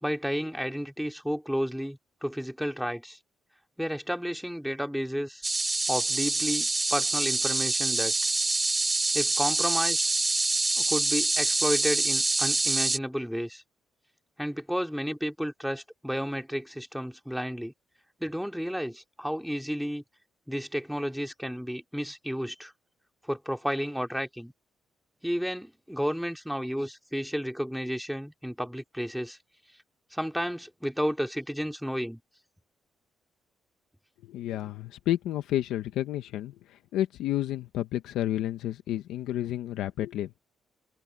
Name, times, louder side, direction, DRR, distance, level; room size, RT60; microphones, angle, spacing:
voice 1, 0.0-3.2 3.8-5.4 5.9-8.1 9.1-10.0 10.8-13.6 14.4-17.7 18.2-20.0 20.5-22.7 23.3-24.5 25.2-29.4 30.1-32.2, equal, ahead, 3.4 m, -32 dB
sound 1, 5.4-13.0, right 3 dB, 20° right, 1.1 m, -26 dB
voice 2, 34.3-36.5 36.9-40.3, left 13 dB, 90° left, 1.1 m, -30 dB
cardioid pair, 90°, 0 cm